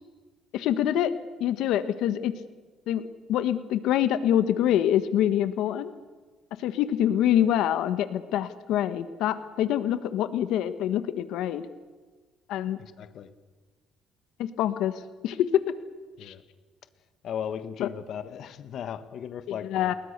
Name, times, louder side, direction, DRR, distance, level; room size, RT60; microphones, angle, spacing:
voice 1, 0.5-1.1 1.4-2.3 2.9-3.0 3.3-5.9 6.6-11.6 12.5-12.8 14.4-14.9 15.2-15.6 16.2-16.3 17.8-17.9 19.7-19.9, left 11 dB, 75° left, 12 dB, 1.4 m, -25 dB
voice 2, 12.8-13.3 16.2-16.4 17.2-19.9, left 8 dB, 55° left, 12 dB, 1.5 m, -36 dB
29.0 x 21.5 x 6.7 m, 1.4 s
cardioid pair, 135°, 0 cm